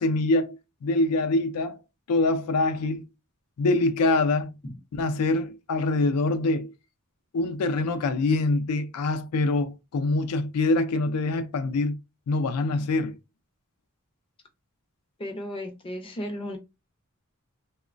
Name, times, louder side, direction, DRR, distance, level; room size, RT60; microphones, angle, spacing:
voice 1, 0.0-1.8 2.1-3.1 3.6-4.6 4.9-6.7 7.3-12.0 12.3-13.1, left 2 dB, 80° left, 0.4 m, -24 dB
voice 2, 15.2-16.6, left 1 dB, 25° left, 0.4 m, -34 dB
3.0 x 2.0 x 2.4 m
head